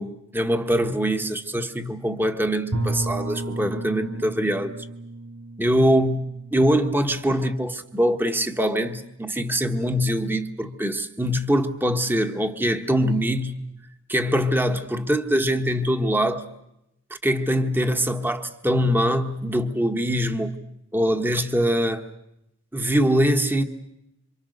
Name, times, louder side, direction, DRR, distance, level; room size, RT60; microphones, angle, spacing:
voice 1, 0.0-4.7 5.6-13.6 14.1-16.5 17.2-20.5 20.9-22.0 22.7-23.6, equal, 10° right, 1.4 m, -23 dB
Bowed string instrument, 2.7-7.5, right 2 dB, 90° right, 1.8 m, -33 dB
27.5 x 26.0 x 6.6 m
head